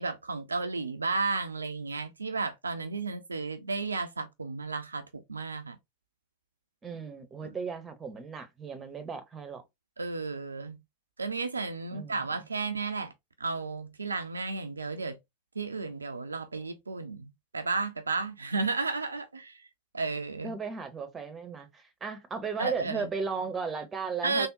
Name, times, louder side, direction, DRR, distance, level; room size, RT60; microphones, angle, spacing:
voice 1, 0.0-5.8 7.4-7.5 10.0-10.8 11.2-13.1 13.4-15.2 15.6-19.5 19.9-20.6 22.6-23.1 24.2-24.5, right 4 dB, 75° right, 0.3 m, -33 dB
voice 2, 6.8-9.6 11.9-12.2 20.4-24.5, right 5 dB, 20° right, 0.7 m, -36 dB
3.5 x 2.1 x 2.5 m
figure-of-eight pair, 90°, 0 cm